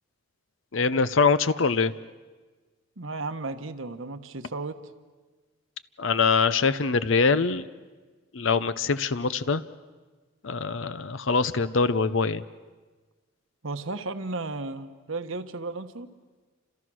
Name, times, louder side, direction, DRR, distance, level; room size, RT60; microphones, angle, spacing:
voice 1, 0.7-1.9 6.0-7.6 8.3-9.6 10.4-12.4, left 4 dB, 65° left, 13 dB, 0.7 m, -23 dB
voice 2, 3.0-4.8 13.6-16.1, right 3 dB, 70° right, 9 dB, 1.2 m, -34 dB
29.5 x 26.5 x 6.3 m, 1.3 s
head